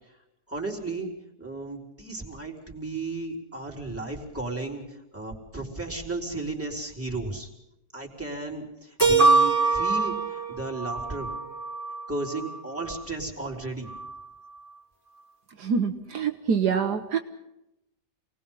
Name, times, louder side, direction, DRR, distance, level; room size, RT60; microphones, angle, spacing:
voice 1, 0.5-1.1 1.4-7.5 7.9-11.3 12.1-13.9, right 2 dB, 5° right, -1 dB, 3.8 m, -34 dB
Keyboard (musical), 9.0-11.9, right 5 dB, 10° left, 3.4 m, -27 dB
sound 1, 9.2-13.0 13.9-14.6, right 2 dB, 30° right, 1.7 m, -26 dB
voice 2, 15.6-17.2, right 6 dB, 70° right, 5 dB, 1.6 m, -25 dB
28.0 x 19.5 x 5.6 m, 0.87 s
omnidirectional pair, 1.8 m